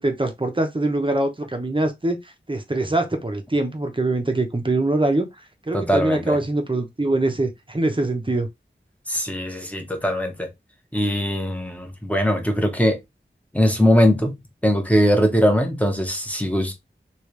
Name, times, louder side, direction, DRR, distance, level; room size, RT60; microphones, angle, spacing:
voice 1, 0.0-2.2 2.5-5.3 5.7-8.5, right 2 dB, 25° right, 0.9 m, -23 dB
voice 2, 5.7-6.4 9.1-10.5 10.9-13.0 13.5-16.7, equal, 5° left, 1.1 m, -21 dB
3.2 x 3.0 x 3.2 m
wide cardioid pair, 55°, 20 cm